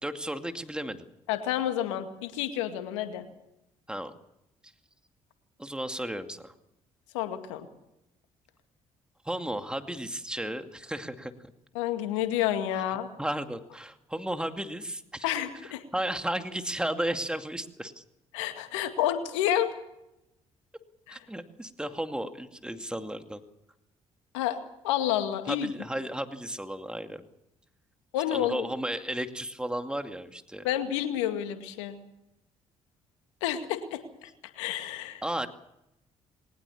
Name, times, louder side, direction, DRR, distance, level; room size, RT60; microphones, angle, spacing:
voice 1, 0.0-1.0 3.9-4.1 5.6-6.5 9.2-11.3 12.8-15.3 15.6-18.0 21.1-23.4 25.5-27.3 28.3-30.7 35.2-35.5, right 1 dB, 5° right, 7 dB, 2.4 m, -34 dB
voice 2, 1.3-3.2 7.1-7.7 11.7-13.1 15.2-15.8 18.3-19.7 21.1-21.2 24.3-24.6 24.8-25.7 28.1-28.6 30.6-32.0 33.4-34.3 34.6-35.2, left 11 dB, 80° left, 8 dB, 2.1 m, -29 dB
21.5 x 19.5 x 7.2 m, 0.85 s
hypercardioid pair, 50°, 15 cm